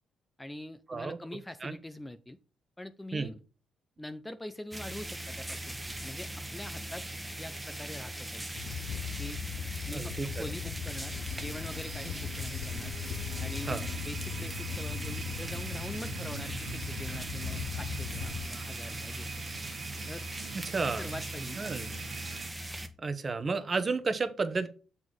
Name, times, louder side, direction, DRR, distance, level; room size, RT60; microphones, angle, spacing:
voice 1, 0.4-2.4 2.8-3.4 4.0-7.0 7.4-8.5 9.2-9.4 9.9-12.9 13.4-19.5 20.1-20.3 20.9-22.0, left 1 dB, 10° left, 11 dB, 0.5 m, -44 dB
sound 1, 4.7-22.9, right 1 dB, 10° right, 1.1 m, -40 dB
sound 2, 8.6-18.5, left 9 dB, 85° left, 0.4 m, -39 dB
voice 2, 9.9-10.4 13.6-13.8 20.6-21.1 21.6-21.9 23.0-24.7, right 4 dB, 35° right, 9 dB, 0.9 m, -32 dB
sound 3, 10.8-22.5, right 8 dB, 75° right, 0.8 m, -45 dB
7.1 x 4.2 x 4.6 m, 0.35 s
cardioid pair, 90°, 0 cm